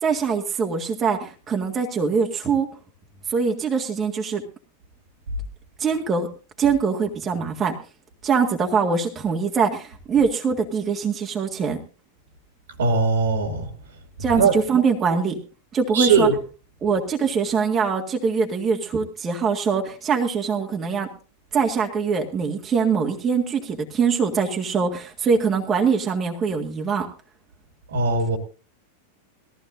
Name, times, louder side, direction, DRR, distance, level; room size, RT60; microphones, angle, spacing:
voice 1, 0.0-2.7 3.3-4.4 5.8-6.3 6.6-7.7 8.2-11.8 14.2-15.4 15.7-16.3 16.8-21.1 21.5-27.1, right 5 dB, 25° right, 0 dB, 1.8 m, -23 dB
voice 2, 12.8-13.7 14.3-14.5 15.9-16.4 27.9-28.4, right 4 dB, 65° right, 7 dB, 2.4 m, -20 dB
20.0 x 15.0 x 2.6 m, 0.35 s
figure-of-eight pair, 90°, 0 cm